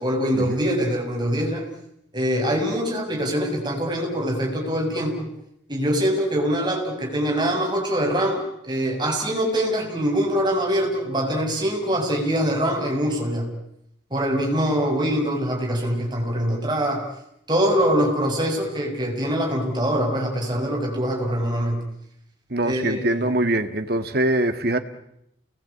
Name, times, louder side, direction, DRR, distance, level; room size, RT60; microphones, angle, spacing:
voice 1, 0.0-1.7 2.1-5.3 5.7-13.5 14.1-17.0 17.5-21.8 22.6-23.3, equal, 25° right, 0 dB, 7.3 m, -23 dB
voice 2, 22.5-24.8, right 1 dB, 55° right, 7 dB, 2.1 m, -23 dB
29.5 x 21.0 x 8.7 m, 0.78 s
head